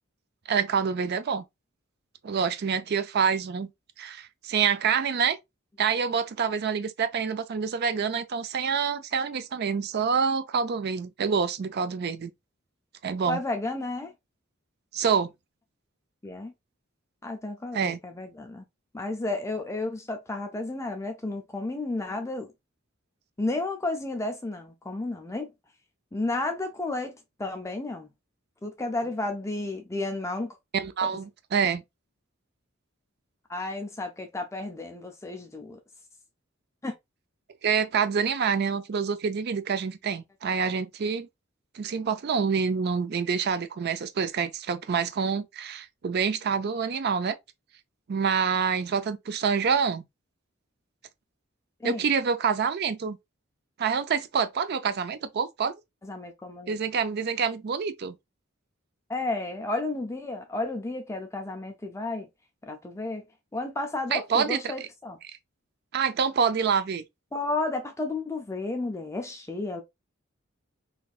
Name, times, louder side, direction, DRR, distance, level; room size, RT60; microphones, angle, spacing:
voice 1, 0.5-1.4 2.2-3.7 4.0-5.4 5.8-12.3 13.0-13.4 14.9-15.3 17.7-18.0 30.7-31.8 37.6-41.3 41.7-47.4 48.1-50.0 51.8-53.2 53.8-55.7 56.7-58.1 64.1-64.7 65.3-65.4 65.9-67.0, right 6 dB, 50° right, 0.4 m, -27 dB
voice 2, 13.3-14.1 16.2-16.5 17.2-18.6 18.9-22.5 23.4-25.5 26.1-27.1 27.4-28.1 28.6-30.6 33.5-35.8 36.8-36.9 51.8-52.0 56.0-56.7 59.1-62.3 62.6-63.2 63.5-65.2 67.3-69.8, left 2 dB, 15° left, 0.4 m, -32 dB
4.0 x 2.7 x 2.4 m
head